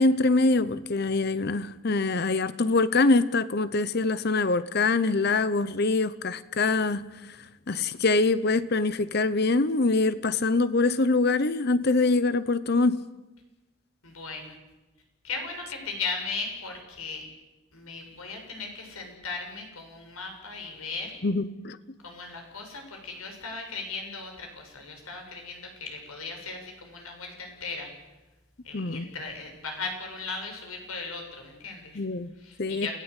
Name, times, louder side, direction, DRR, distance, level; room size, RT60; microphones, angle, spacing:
voice 1, 0.0-7.1 7.7-13.0 21.2-21.8 28.7-29.1 32.0-32.3 32.6-32.9, left 3 dB, 45° left, 0.8 m, -24 dB
voice 2, 14.0-14.6 15.2-17.2 17.7-21.2 22.0-27.9 28.6-32.0 32.4-32.9, left 4 dB, 85° left, 6.7 m, -37 dB
28.5 x 17.5 x 8.3 m
head